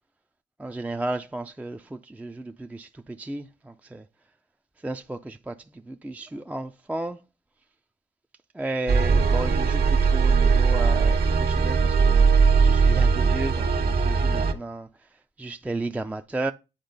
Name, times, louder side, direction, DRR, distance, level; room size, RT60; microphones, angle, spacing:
voice 1, 0.6-4.0 4.8-5.6 5.9-7.2 8.5-14.9 15.4-16.5, right 2 dB, 5° right, 0.4 m, -33 dB
sound 1, 8.9-14.5, right 5 dB, 50° right, 1.4 m, -20 dB
8.7 x 4.3 x 3.9 m
cardioid pair, 90°, 20 cm